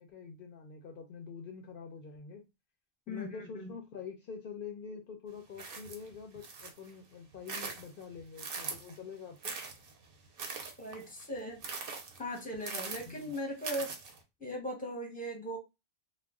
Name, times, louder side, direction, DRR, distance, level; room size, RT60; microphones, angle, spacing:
voice 1, 0.0-2.4 3.1-9.6 13.1-13.3, left 6 dB, 65° left, 0.7 m, -46 dB
voice 2, 3.1-3.7 10.8-11.6 12.2-13.9 14.4-15.6, equal, 10° left, 0.8 m, -38 dB
sound 1, 5.5-6.9 7.3-9.0 9.4-14.2, right 4 dB, 65° right, 0.8 m, -42 dB
2.3 x 2.2 x 3.5 m
omnidirectional pair, 1.1 m